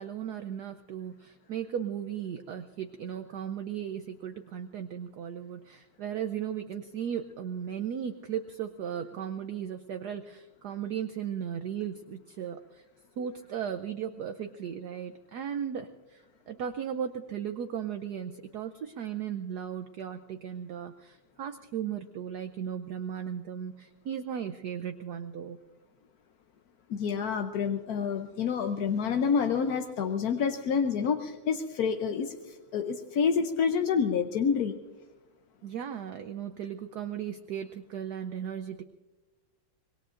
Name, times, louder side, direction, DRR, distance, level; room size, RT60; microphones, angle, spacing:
voice 1, 0.0-12.8 13.2-25.6 35.6-38.8, right 8 dB, 75° right, 8 dB, 0.9 m, -36 dB
voice 2, 26.9-34.7, left 6 dB, 65° left, 5 dB, 1.0 m, -28 dB
25.5 x 21.5 x 2.5 m, 1.2 s
omnidirectional pair, 2.4 m